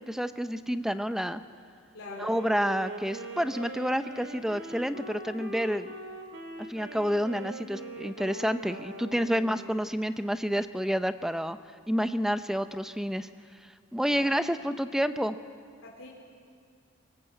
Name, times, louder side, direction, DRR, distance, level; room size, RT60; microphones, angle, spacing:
voice 1, 0.0-1.4 2.2-5.9 6.7-11.6 11.9-13.3 13.9-15.4, equal, ahead, 11 dB, 0.6 m, -29 dB
voice 2, 1.9-2.3 9.3-9.4 14.1-14.3 15.8-16.1, left 2 dB, 85° left, -4 dB, 3.7 m, -44 dB
Wind instrument woodwind instrument, 2.0-10.1, right 2 dB, 55° right, 2.2 m, -42 dB
25.0 x 22.0 x 8.1 m, 2.2 s
head